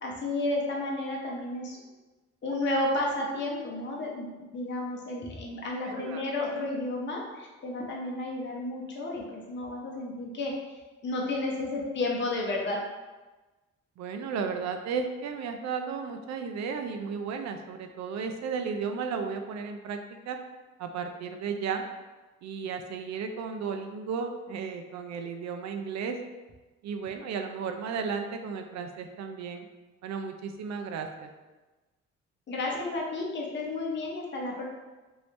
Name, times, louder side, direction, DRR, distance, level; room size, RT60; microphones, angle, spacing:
voice 1, 0.0-1.8 2.4-4.3 4.5-10.5 11.0-12.8 32.5-34.6, left 2 dB, 40° left, -2 dB, 0.7 m, -32 dB
voice 2, 5.8-6.2 14.0-20.4 20.8-21.8 22.4-26.2 26.8-29.7 30.0-31.3, right 5 dB, 65° right, 6 dB, 0.5 m, -34 dB
3.0 x 2.7 x 3.1 m, 1.2 s
cardioid pair, 90°, 30 cm